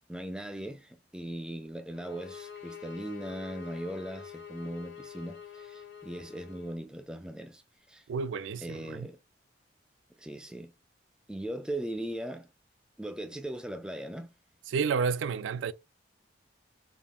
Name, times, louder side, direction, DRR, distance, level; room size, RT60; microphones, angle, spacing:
voice 1, 0.1-7.6 7.9-8.1 8.6-9.2 10.2-10.7 11.3-12.5 13.0-14.3, right 1 dB, 5° right, 0.3 m, -39 dB
sound 1, 1.9-6.8, left 8 dB, 80° left, 0.7 m, -46 dB
voice 2, 8.1-9.1 14.7-15.7, right 5 dB, 80° right, 0.3 m, -30 dB
3.6 x 2.3 x 2.3 m
head